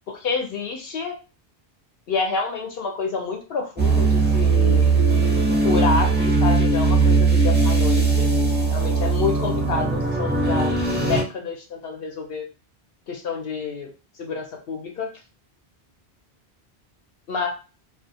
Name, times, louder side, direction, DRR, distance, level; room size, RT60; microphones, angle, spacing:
voice 1, 0.1-1.1 2.1-4.9 5.6-8.3 8.7-10.8 11.0-12.5 13.1-13.9 14.2-15.1 17.3-17.5, left 4 dB, 70° left, 2 dB, 0.8 m, -28 dB
sound 1, 3.8-11.2, right 4 dB, 20° right, 0.3 m, -19 dB
2.4 x 2.0 x 2.6 m, 0.33 s
omnidirectional pair, 1.0 m